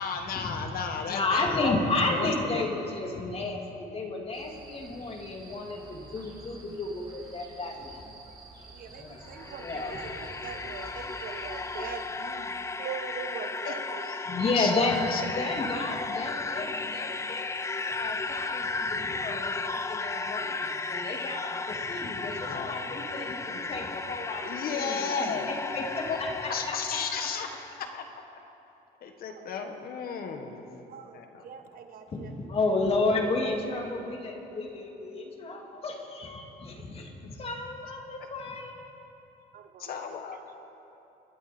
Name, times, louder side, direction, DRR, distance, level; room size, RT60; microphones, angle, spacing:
voice 1, 0.0-1.8 2.1-2.7 13.6-13.8 14.0-14.1 14.5-14.7 15.1-15.2 22.4-22.8 24.4-25.5 26.1-26.2 26.5-27.5 27.8-28.0 29.0-30.7 31.1-31.4 39.8-40.4, left 6 dB, 60° left, 5 dB, 1.6 m, -33 dB
voice 2, 1.1-8.0 9.0-9.2 9.6-9.9 14.3-15.0 15.3-17.5 17.9-26.7 32.1-32.2 32.5-38.8, left 3 dB, 35° left, 2 dB, 2.4 m, -32 dB
sound 1, 4.3-12.0, right 2 dB, 25° right, 3.7 m, -49 dB
voice 3, 8.7-14.5 15.4-15.6 29.3-30.2 30.9-32.4 33.0-33.8 39.5-40.2, right 7 dB, 60° right, 7 dB, 1.3 m, -43 dB
sound 2, 9.2-27.8, left 3 dB, 15° left, 0.6 m, -35 dB
27.0 x 12.0 x 4.4 m, 2.9 s
cardioid pair, 110°, 17 cm